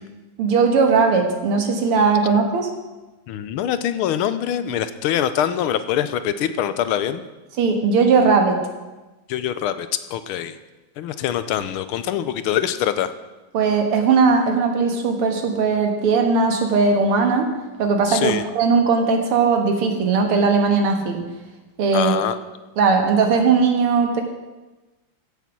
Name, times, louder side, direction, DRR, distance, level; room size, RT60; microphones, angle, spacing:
voice 1, 0.4-2.7 7.6-8.6 13.5-17.5 17.8-21.2 21.8-22.1 22.8-24.2, right 4 dB, 85° right, 4 dB, 2.4 m, -18 dB
voice 2, 3.3-7.2 9.3-10.6 11.0-13.1 18.1-18.4 21.9-22.4, left 10 dB, 80° left, 12 dB, 1.5 m, -24 dB
15.5 x 6.9 x 6.0 m, 1.1 s
omnidirectional pair, 2.4 m